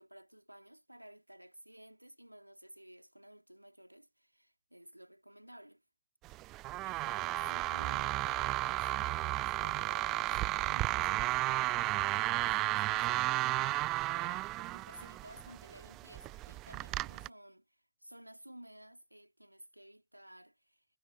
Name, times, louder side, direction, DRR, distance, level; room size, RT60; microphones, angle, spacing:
voice 1, 0.0-5.8 6.8-20.8, right 1 dB, 90° right, 2.8 m, -55 dB
sound 1, 6.2-17.3, right 18 dB, 40° right, 0.3 m, -33 dB
figure-of-eight pair, 90°, 0 cm